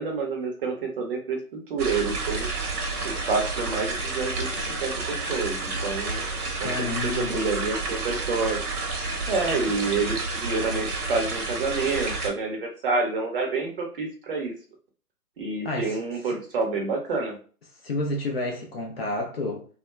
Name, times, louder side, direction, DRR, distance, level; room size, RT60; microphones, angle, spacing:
voice 1, 0.0-2.5 3.0-4.5 4.8-6.2 6.6-8.6 9.3-14.5 15.4-17.4, right 4 dB, 35° right, 0.7 m, -28 dB
sound 1, 1.8-12.3, right 3 dB, 65° right, 1.0 m, -30 dB
voice 2, 6.6-7.5 15.6-16.3 17.8-19.7, left 2 dB, 40° left, 0.5 m, -30 dB
2.3 x 2.0 x 3.0 m
figure-of-eight pair, 130°, 47 cm